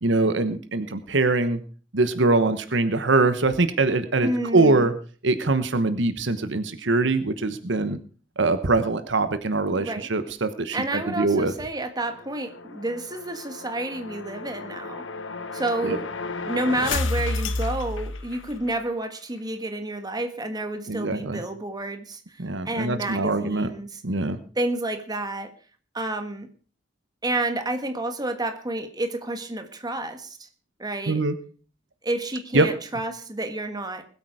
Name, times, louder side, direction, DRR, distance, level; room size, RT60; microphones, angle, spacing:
voice 1, 0.0-1.6 1.9-4.9 5.2-8.0 8.4-11.5 15.8-16.0 20.9-21.4 22.4-23.7 24.0-24.4 31.1-31.3 32.5-32.7, right 3 dB, 70° right, 11 dB, 1.1 m, -23 dB
voice 2, 4.2-4.9 9.8-10.1 10.7-15.0 15.5-16.1 16.5-22.2 22.6-24.0 24.5-25.5 25.9-26.5 27.2-30.5 30.8-31.2 32.0-34.0, right 2 dB, 20° right, 7 dB, 1.6 m, -30 dB
sound 1, 12.0-18.8, left 3 dB, 85° left, 1.2 m, -32 dB
20.5 x 8.6 x 4.9 m, 0.41 s
head